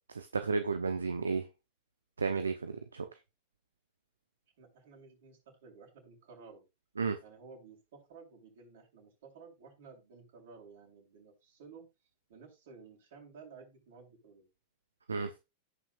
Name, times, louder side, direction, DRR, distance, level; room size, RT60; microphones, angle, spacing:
voice 1, 0.1-1.4 2.2-3.1 7.0-7.2 15.1-15.3, right 4 dB, 85° right, 0.9 m, -32 dB
voice 2, 4.6-6.6 7.2-11.9 12.3-14.5, right 5 dB, 65° right, 6.9 m, -54 dB
17.5 x 6.0 x 2.5 m
figure-of-eight pair, 90°, 0 cm